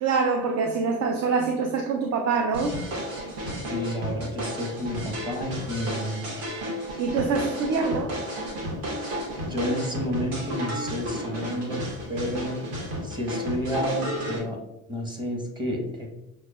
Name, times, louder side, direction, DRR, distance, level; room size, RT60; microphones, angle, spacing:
voice 1, 0.0-2.8 7.0-8.1, right 4 dB, 45° right, 3 dB, 0.5 m, -25 dB
sound 1, 2.5-14.4, equal, 80° right, 1.1 m, -33 dB
voice 2, 3.6-6.3 9.4-11.8 12.1-12.6 13.0-14.6 14.9-16.1, equal, 10° right, 0 dB, 1.0 m, -30 dB
6.1 x 2.1 x 2.3 m, 0.90 s
hypercardioid pair, 70°, 36 cm